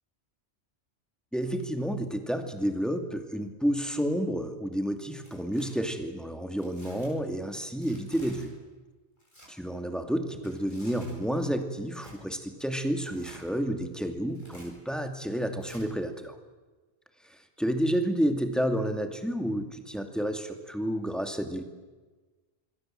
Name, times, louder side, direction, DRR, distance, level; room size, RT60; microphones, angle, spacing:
voice 1, 1.3-8.5 9.5-16.4 17.3-21.6, equal, ahead, 5 dB, 2.5 m, -30 dB
Tearing, 5.0-5.7 6.6-7.1 7.8-8.5 9.2-9.5 10.3-11.2 11.9-12.2 13.0-13.5 14.3-14.7 15.6-15.8, equal, 45° left, 8.0 m, -51 dB
27.0 x 22.0 x 7.8 m, 1.3 s
omnidirectional pair, 1.1 m